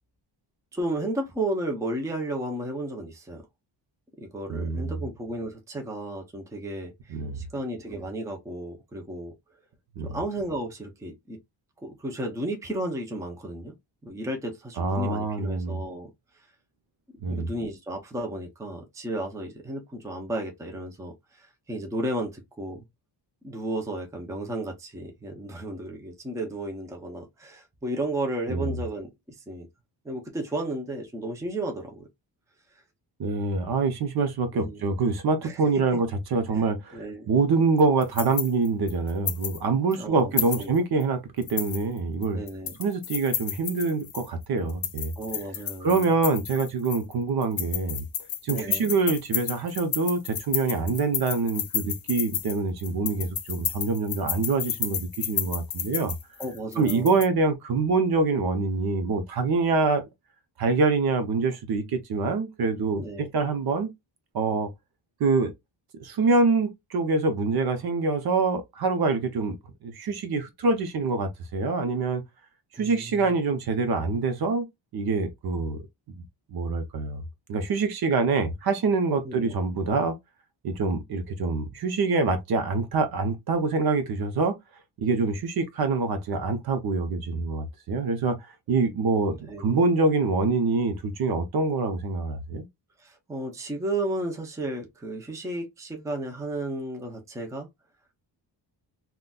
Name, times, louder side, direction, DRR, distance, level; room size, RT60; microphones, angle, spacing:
voice 1, 0.7-3.4 4.2-9.3 10.0-11.4 11.8-13.8 14.0-16.1 17.2-22.8 23.4-29.1 29.5-29.7 30.0-32.1 34.5-34.8 35.4-36.0 36.5-36.7 36.9-37.3 40.0-40.7 42.3-42.8 45.2-46.0 48.5-49.0 56.4-57.1 63.0-63.3 72.7-73.4 79.2-79.5 89.5-89.8 93.0-97.7, right 1 dB, 5° right, 0.5 m, -33 dB
voice 2, 4.5-5.0 7.1-7.4 10.0-10.2 14.8-15.8 17.2-17.5 28.5-28.7 33.2-42.4 42.8-45.1 45.8-48.0 48.4-56.1 56.8-60.0 60.6-63.9 64.3-64.7 65.2-65.5 66.0-69.6 69.8-72.2 72.8-74.7 74.9-75.8 76.2-76.3 76.5-77.2 77.5-80.1 80.6-84.6 85.0-88.4 88.7-92.7, right 4 dB, 55° right, 0.7 m, -25 dB
sound 1, 37.8-39.6 39.9-40.0 40.4-41.0 41.4-44.3 44.7-47.1 47.4-57.3, left 9 dB, 50° left, 0.6 m, -31 dB
3.8 x 2.2 x 2.3 m
wide cardioid pair, 170°, 45 cm